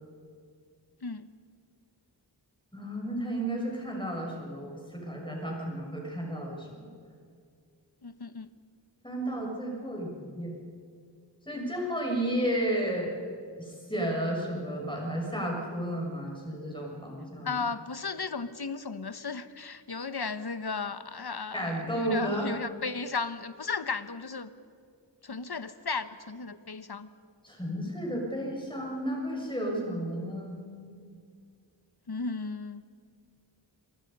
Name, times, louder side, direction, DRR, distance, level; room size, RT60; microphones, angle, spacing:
voice 1, 2.7-6.7 9.0-10.5 11.5-13.1 13.6-17.6 21.5-22.5 27.4-31.0, right 1 dB, 10° left, -1 dB, 6.4 m, -32 dB
voice 2, 8.0-8.5 17.4-24.5 25.2-27.1 32.1-32.8, left 4 dB, 55° left, 12 dB, 1.2 m, -35 dB
28.0 x 22.0 x 5.5 m, 2.3 s
wide cardioid pair, 40°, 45 cm